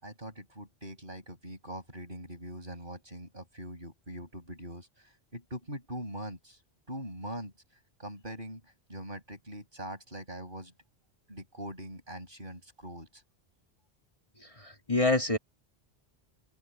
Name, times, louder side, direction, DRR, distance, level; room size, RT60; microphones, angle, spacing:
voice 1, 0.0-6.6 6.9-7.5 8.0-8.6 8.9-10.7 11.3-13.1, equal, 50° right, 7.6 m, -42 dB
voice 2, 14.4-15.4, left 2 dB, 30° left, 2.4 m, -27 dB
open air
omnidirectional pair, 1.1 m